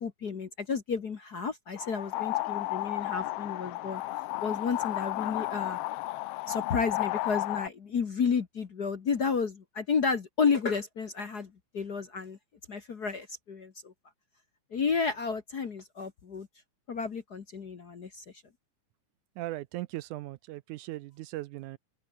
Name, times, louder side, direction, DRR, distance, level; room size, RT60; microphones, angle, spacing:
voice 1, 0.0-4.0 4.4-5.8 6.5-12.4 12.7-13.9 14.7-16.5 16.9-18.2, left 5 dB, 45° left, 1.3 m, -31 dB
sound 1, 1.8-7.7, left 17 dB, 90° left, 1.3 m, -33 dB
voice 2, 19.4-21.8, right 17 dB, 80° right, 2.2 m, -38 dB
omnidirectional pair, 3.5 m